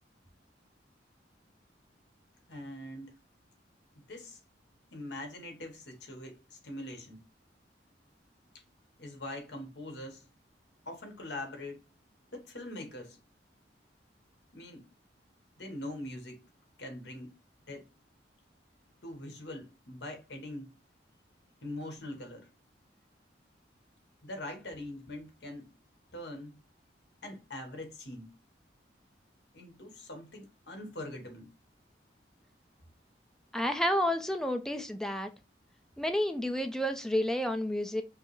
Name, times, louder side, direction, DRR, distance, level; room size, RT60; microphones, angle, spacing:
voice 1, 2.5-3.1 4.1-4.4 4.9-7.2 9.0-10.2 10.9-11.8 12.3-13.2 14.5-14.9 15.6-16.4 16.8-17.4 17.7-17.9 19.0-20.7 21.6-22.5 24.2-25.7 26.1-26.5 27.2-28.3 29.5-31.5, left 1 dB, 70° left, 1.3 m, -42 dB
voice 2, 33.5-35.3 36.0-38.0, left 1 dB, 5° left, 0.5 m, -30 dB
5.5 x 2.0 x 3.0 m
head